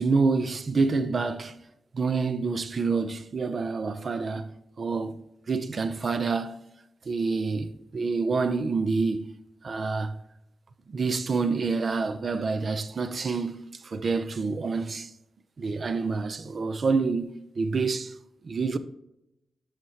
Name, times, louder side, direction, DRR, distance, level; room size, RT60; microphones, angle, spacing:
voice 1, 0.0-1.5 1.9-4.5 4.8-5.2 5.5-6.7 7.1-9.4 9.6-10.2 10.9-15.1 15.6-18.2 18.4-18.8, right 4 dB, 50° right, 0.7 m, -27 dB
10.5 x 6.5 x 2.9 m
cardioid pair, 70°, 0 cm